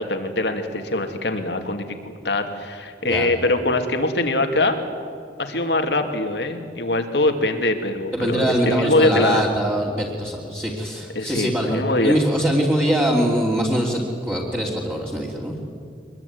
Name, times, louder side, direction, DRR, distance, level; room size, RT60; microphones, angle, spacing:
voice 1, 0.0-4.8 5.4-9.5 11.1-12.2, left 2 dB, 80° left, 5 dB, 2.7 m, -23 dB
voice 2, 8.1-15.6, equal, 10° right, -4 dB, 3.0 m, -23 dB
24.0 x 21.5 x 9.6 m, 2.3 s
head